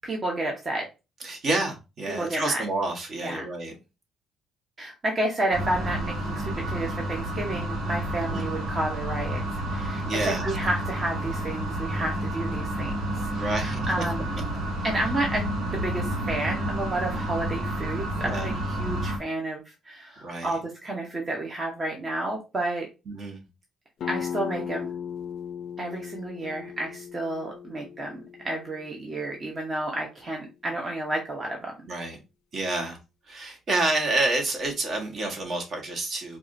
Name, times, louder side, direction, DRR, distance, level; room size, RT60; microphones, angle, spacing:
voice 1, 0.0-0.9 2.1-2.6 3.2-3.5 4.8-9.4 9.7-14.3 14.8-15.4 15.7-22.9 24.1-24.9 25.8-31.7, right 2 dB, 30° right, 0 dB, 0.9 m, -31 dB
voice 2, 1.2-3.7 8.3-8.5 10.0-10.6 13.3-14.1 18.2-18.5 20.2-20.5 23.1-23.4 31.9-32.2 32.5-33.0 33.3-36.4, right 2 dB, 50° right, 2 dB, 1.2 m, -29 dB
sound 1, 5.5-19.2, right 1 dB, 80° right, 1.2 m, -30 dB
sound 2, 24.0-29.4, left 8 dB, 65° left, 0.5 m, -37 dB
4.7 x 2.4 x 2.6 m, 0.28 s
cardioid pair, 100°, 0 cm